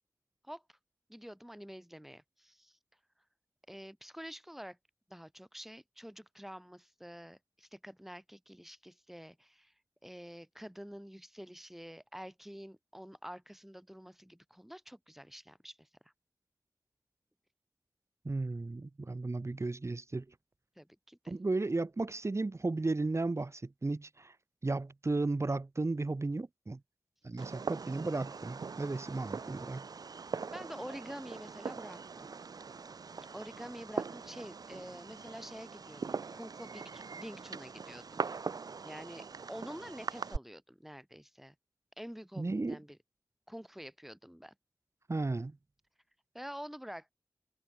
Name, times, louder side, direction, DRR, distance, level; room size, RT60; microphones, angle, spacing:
voice 1, 0.4-0.8 1.1-2.8 3.7-4.8 5.1-9.7 10.0-16.1 20.8-21.3 30.5-32.3 33.3-38.2 38.8-41.6 42.0-43.0 43.5-44.5 46.3-47.1, equal, 5° right, 3.6 m, -48 dB
voice 2, 18.2-20.2 21.3-24.3 24.6-26.8 27.2-29.9 42.4-42.8 45.1-45.6, right 3 dB, 45° right, 3.2 m, -34 dB
Fireworks, 27.4-40.4, right 5 dB, 85° right, 3.1 m, -42 dB
cardioid pair, 45°, 6 cm